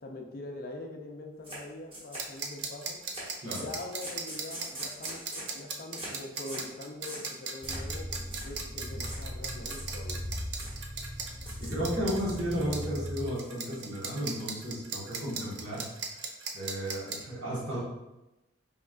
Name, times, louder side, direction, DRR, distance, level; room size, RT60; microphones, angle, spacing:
voice 1, 0.0-3.0 3.5-8.1 8.4-10.2, left 2 dB, 45° left, 2 dB, 0.5 m, -43 dB
sound 1, 1.4-1.6 1.9-2.6 3.1-3.3 3.5-5.6 6.0-6.2 6.5-6.7 7.0-7.3 7.6-7.9 8.2-8.5 9.0-9.2 9.6-10.2 10.6-10.8 11.3-11.8 12.1-12.8 13.2-14.0, right 1 dB, 25° right, 1.1 m, -43 dB
sound 2, 2.1-17.2, right 5 dB, 55° right, 0.5 m, -37 dB
sound 3, 7.6-13.3, equal, ahead, 0.7 m, -39 dB
voice 2, 11.6-15.9 16.1-17.8, equal, 80° right, -6 dB, 1.5 m, -34 dB
4.4 x 3.0 x 2.4 m, 0.96 s
head